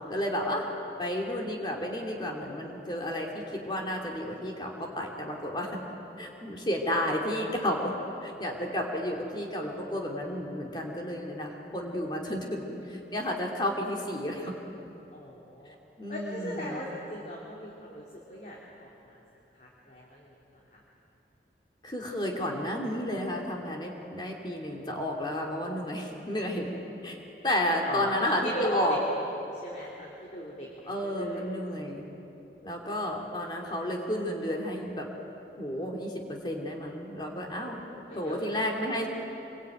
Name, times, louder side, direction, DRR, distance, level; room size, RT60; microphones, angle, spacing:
voice 1, 0.1-0.7 1.0-5.8 6.2-8.0 8.2-14.6 15.7-16.8 21.8-27.2 27.4-29.0 30.9-32.1 32.6-35.1 35.6-36.1 36.4-37.8 38.1-39.1, left 1 dB, 25° left, 0 dB, 2.8 m, -32 dB
voice 2, 15.1-15.8 16.1-19.2 19.5-20.3 27.9-29.0 29.5-31.6 37.6-39.0, left 1 dB, 45° left, -4 dB, 3.0 m, -38 dB
26.0 x 22.5 x 9.1 m, 3.0 s
head